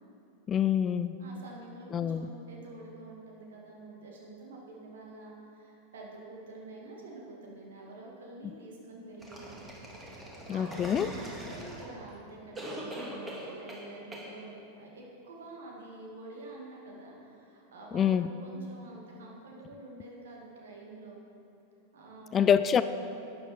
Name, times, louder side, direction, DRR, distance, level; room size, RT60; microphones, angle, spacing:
voice 1, 0.5-1.2 1.9-2.3 10.5-11.1 17.9-18.3 22.3-22.8, left 8 dB, 25° left, 12 dB, 0.3 m, -26 dB
voice 2, 1.2-9.7 10.4-21.3 21.9-22.8, right 2 dB, 60° right, -2 dB, 2.2 m, -47 dB
sound 1, 9.2-12.1 12.6-13.9 14.1-14.3, right 1 dB, 15° right, 2.1 m, -42 dB
11.5 x 9.5 x 4.4 m, 2.8 s
figure-of-eight pair, 90°, 0 cm